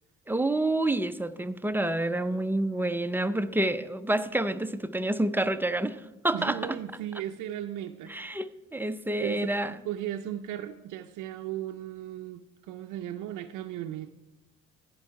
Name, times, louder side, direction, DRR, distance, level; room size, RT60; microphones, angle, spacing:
voice 1, 0.3-6.0 6.2-6.6 8.1-9.7, right 1 dB, 5° right, 11 dB, 0.4 m, -28 dB
voice 2, 6.3-8.4 9.1-14.1, right 12 dB, 90° right, 5 dB, 0.5 m, -36 dB
15.5 x 5.4 x 4.7 m, 1.0 s
cardioid pair, 90°, 30 cm